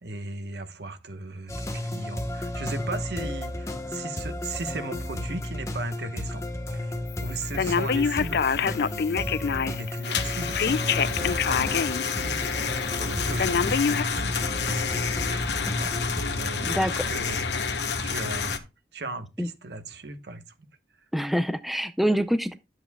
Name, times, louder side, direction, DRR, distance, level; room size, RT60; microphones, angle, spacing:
voice 1, 0.0-16.0 16.3-17.7 18.0-18.7 18.9-20.7, right 2 dB, 70° right, 1.2 m, -38 dB
sound 1, 1.5-16.4, left 1 dB, 15° left, 1.0 m, -33 dB
Telephone, 7.6-9.9 10.6-12.0 12.5-12.6 13.4-14.0, left 6 dB, 60° left, 0.4 m, -25 dB
sound 2, 10.0-18.6, left 5 dB, 75° left, 1.1 m, -29 dB
voice 2, 16.7-17.1 19.4-19.5 21.1-22.5, equal, ahead, 0.5 m, -25 dB
11.5 x 7.8 x 2.3 m
head